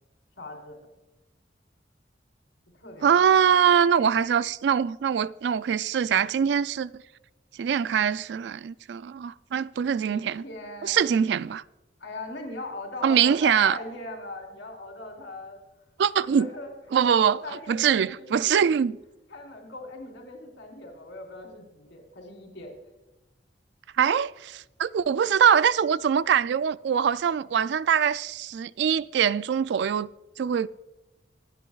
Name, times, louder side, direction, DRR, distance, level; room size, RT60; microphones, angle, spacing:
voice 1, 0.4-0.8 2.7-3.7 10.0-11.0 12.0-15.6 16.2-16.7 17.0-18.6 19.3-22.7, left 2 dB, 85° left, 4.1 m, -40 dB
voice 2, 3.0-6.9 7.6-10.4 10.8-11.6 13.0-13.8 16.0-16.5 16.9-17.4 17.7-18.9 24.0-30.1 30.4-30.7, right 8 dB, 70° right, 0.3 m, -23 dB
25.5 x 9.2 x 2.4 m
head